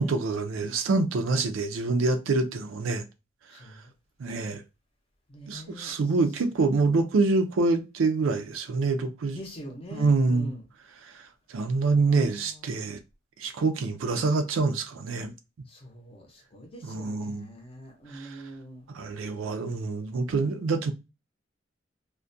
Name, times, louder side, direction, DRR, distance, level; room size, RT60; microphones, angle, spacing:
voice 1, 0.0-3.0 4.2-4.6 5.5-9.4 9.9-10.5 11.0-11.1 11.5-13.0 13.4-15.3 16.8-17.5 18.1-18.4 18.9-20.9, right 3 dB, 85° right, 0.4 m, -26 dB
voice 2, 3.5-3.9 5.3-5.9 6.6-7.0 9.3-10.6 11.9-12.8 15.7-18.9, equal, 30° left, 0.6 m, -44 dB
2.3 x 2.1 x 2.5 m
head